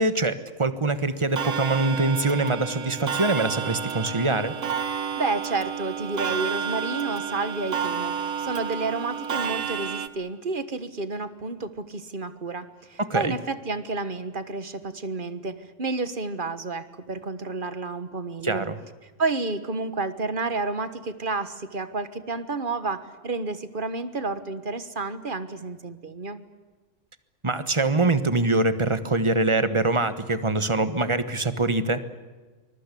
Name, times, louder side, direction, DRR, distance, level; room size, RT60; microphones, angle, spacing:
voice 1, 0.0-4.5 13.0-13.4 18.4-18.8 27.4-32.0, right 2 dB, 25° right, 12 dB, 1.3 m, -24 dB
Clock, 1.4-10.1, right 7 dB, 80° right, 1.6 m, -30 dB
voice 2, 4.9-18.7 19.2-26.4, right 3 dB, 45° right, 12 dB, 1.6 m, -30 dB
24.5 x 21.5 x 8.5 m, 1.3 s
omnidirectional pair, 1.3 m